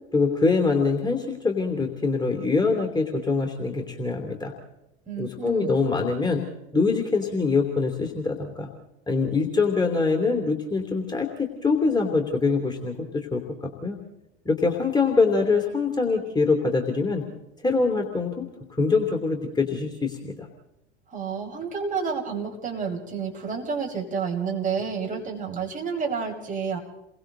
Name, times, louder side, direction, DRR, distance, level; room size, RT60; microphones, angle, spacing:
voice 1, 0.1-4.5 5.2-6.4 6.7-8.7 9.1-14.0 14.4-17.3 17.6-18.5 18.8-20.5, left 4 dB, 10° left, 3 dB, 2.9 m, -24 dB
voice 2, 5.1-5.7 21.1-26.8, right 6 dB, 25° right, 0 dB, 5.4 m, -30 dB
29.5 x 22.5 x 3.9 m, 0.88 s
figure-of-eight pair, 75°, 33 cm